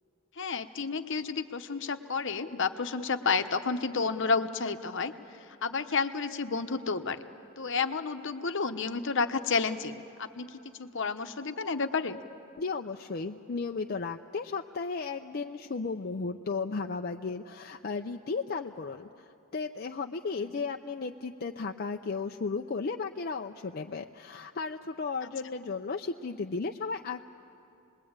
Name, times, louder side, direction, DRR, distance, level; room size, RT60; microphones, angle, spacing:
voice 1, 0.4-5.1 5.6-7.2 7.6-12.2 20.4-20.5, left 4 dB, 65° left, 8 dB, 1.0 m, -31 dB
voice 2, 12.6-27.2, left 4 dB, 50° left, 3 dB, 0.6 m, -35 dB
28.0 x 21.0 x 8.8 m, 2.7 s
head